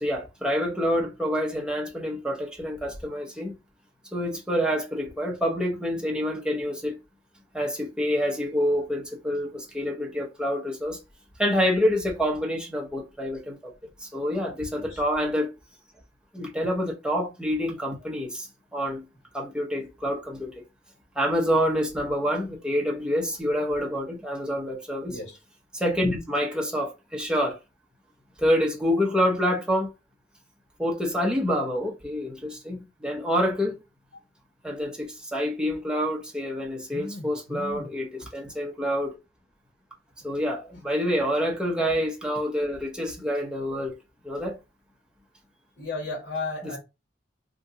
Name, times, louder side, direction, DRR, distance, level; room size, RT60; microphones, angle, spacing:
voice 1, 0.0-3.5 4.1-7.0 7.5-11.0 11.4-13.7 14.0-15.5 16.3-19.0 19.3-20.5 21.2-25.2 25.7-27.6 28.4-29.9 30.8-33.8 34.6-39.2 40.2-43.9 44.2-44.6 46.6-46.8, equal, 5° right, 0.6 m, -27 dB
voice 2, 25.1-25.4 36.9-37.9 45.8-46.8, left 3 dB, 65° left, 1.2 m, -35 dB
2.7 x 2.2 x 3.6 m
head